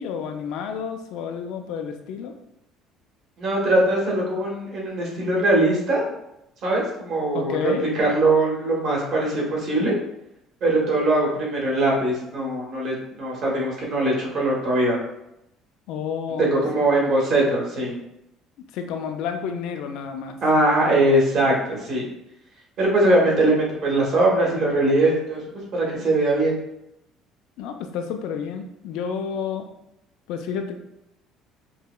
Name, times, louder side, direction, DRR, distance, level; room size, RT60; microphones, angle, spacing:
voice 1, 0.0-2.3 7.3-7.9 15.9-16.7 18.7-20.4 27.6-29.6 30.3-30.8, left 7 dB, 70° left, 6 dB, 0.4 m, -30 dB
voice 2, 3.4-6.1 6.6-9.9 10.6-15.0 16.4-18.0 20.4-22.1 22.8-25.4 25.7-26.5, right 2 dB, 45° right, -3 dB, 1.1 m, -21 dB
5.4 x 2.1 x 2.2 m, 0.81 s
cardioid pair, 165°, 0 cm